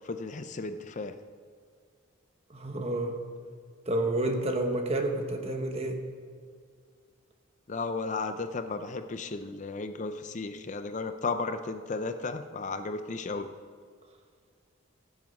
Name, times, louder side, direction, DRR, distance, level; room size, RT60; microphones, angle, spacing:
voice 1, 0.0-1.1 7.7-13.5, left 3 dB, 35° left, 9 dB, 0.5 m, -34 dB
voice 2, 2.5-3.2 3.8-6.0, right 1 dB, 30° right, 4 dB, 1.2 m, -29 dB
16.0 x 7.6 x 5.3 m, 2.1 s
head